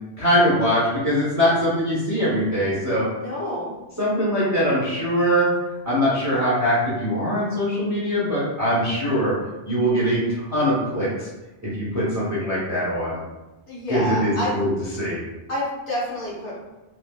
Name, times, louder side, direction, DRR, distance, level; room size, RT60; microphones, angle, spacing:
voice 1, 0.2-3.1 4.0-5.5 5.9-9.3 9.6-11.1 11.8-13.2 13.9-14.7 15.0-15.2, equal, 20° right, -9 dB, 0.7 m, -22 dB
voice 2, 3.2-3.7 13.7-14.6 15.5-16.5, equal, 75° left, -8 dB, 1.6 m, -28 dB
3.3 x 2.1 x 2.2 m, 1.0 s
omnidirectional pair, 1.2 m